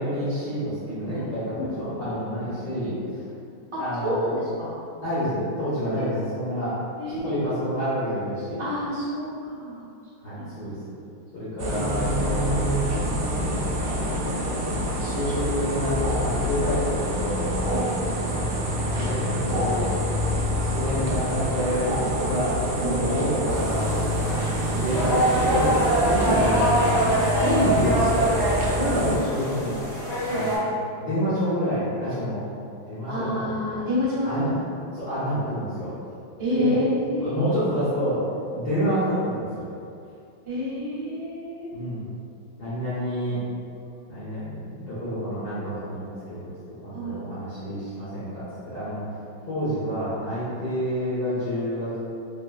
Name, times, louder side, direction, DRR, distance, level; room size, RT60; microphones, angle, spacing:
voice 1, 0.0-3.0 3.8-4.3 5.0-6.8 7.2-8.6 10.2-10.8 11.3-12.6 13.3-14.1 14.7-17.5 18.1-19.9 20.6-27.0 27.4-28.4 28.8-29.8 30.3-30.6 31.0-32.4 32.9-33.8 34.2-34.5 34.9-35.9 36.6-36.8 37.2-38.2 38.5-39.7 41.7-42.0 42.6-43.4 44.1-46.5 46.8-49.0 49.5-52.0, equal, 60° left, -13 dB, 1.2 m, -28 dB
voice 2, 1.5-2.1 3.7-4.7 7.0-7.4 8.6-9.8 10.3-10.7 16.6-16.7 17.7-17.9 22.8-23.0 24.7-24.8 27.4-27.6 30.3-30.5 33.1-34.5 36.4-37.4 40.4-41.7 46.9-47.2 49.4-49.6, left 1 dB, 50° right, -11 dB, 0.3 m, -29 dB
sound 1, 11.6-29.2, equal, 85° right, 0.9 m, -26 dB
sound 2, 23.5-30.6, right 1 dB, 40° left, 0.3 m, -25 dB
3.4 x 2.8 x 2.4 m, 2.5 s
omnidirectional pair, 2.4 m